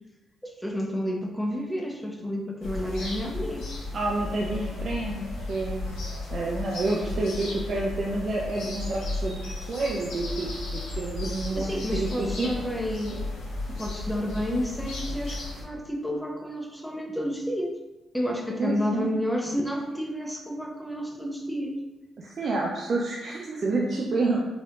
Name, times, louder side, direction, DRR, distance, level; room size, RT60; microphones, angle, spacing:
voice 1, 0.4-3.7 11.6-13.3 13.7-17.8 18.1-21.8, equal, 5° left, 1 dB, 0.9 m, -30 dB
sound 1, 2.6-15.6, left 2 dB, 75° left, 1.2 m, -34 dB
voice 2, 3.9-5.9 6.3-12.5 18.6-19.1 22.2-24.5, right 2 dB, 55° right, -2 dB, 0.6 m, -29 dB
4.9 x 3.5 x 2.5 m, 1.0 s
hypercardioid pair, 45°, 0 cm